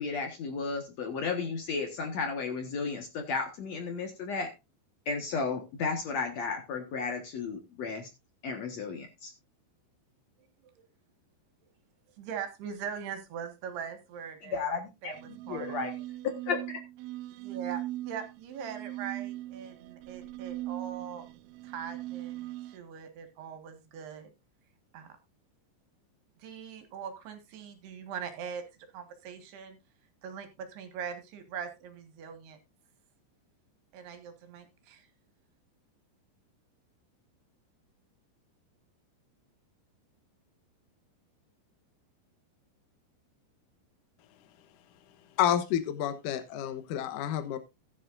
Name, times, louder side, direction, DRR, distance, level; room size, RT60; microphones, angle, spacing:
voice 1, 0.0-4.5 5.1-8.1 8.4-9.3 14.4-15.1 15.5-15.9 16.5-16.8, left 4 dB, 70° left, 4 dB, 1.6 m, -33 dB
voice 2, 12.2-14.7 15.0-15.8 17.4-21.3 21.6-24.3 24.9-25.1 26.4-28.6 28.9-29.8 30.2-32.6 33.9-35.1, right 7 dB, 65° right, 7 dB, 3.5 m, -41 dB
sound 1, 15.1-22.8, right 16 dB, 85° right, 3.1 m, -40 dB
voice 3, 45.4-47.6, left 10 dB, 85° left, 10 dB, 1.9 m, -29 dB
14.5 x 10.5 x 2.6 m, 0.24 s
omnidirectional pair, 5.4 m